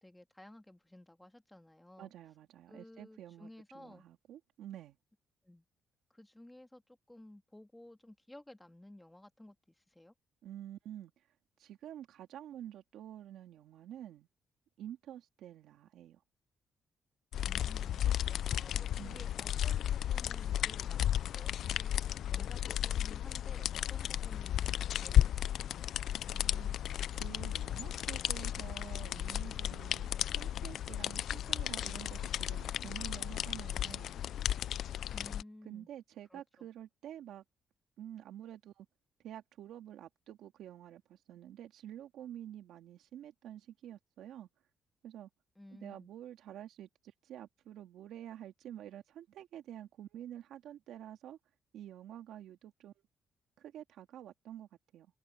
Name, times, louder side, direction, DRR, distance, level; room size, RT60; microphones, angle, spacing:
voice 1, 0.0-2.1 2.7-4.1 5.4-5.6 6.1-10.1 17.4-22.0 22.3-24.7 25.0-25.9 35.1-35.9 36.3-36.7 45.6-46.1, left 1 dB, 10° left, 2.4 m, -55 dB
voice 2, 2.0-5.0 10.4-11.2 11.6-14.3 14.8-16.2 19.0-19.3 26.3-26.8 27.1-34.1 35.6-37.4 38.0-38.9 39.2-44.5 45.0-45.3 45.7-46.9 47.2-51.4 51.7-52.9 53.6-55.1, right 11 dB, 80° right, 2.6 m, -49 dB
sound 1, 17.3-35.4, left 11 dB, 70° left, 0.4 m, -34 dB
cardioid pair, 90°, 0 cm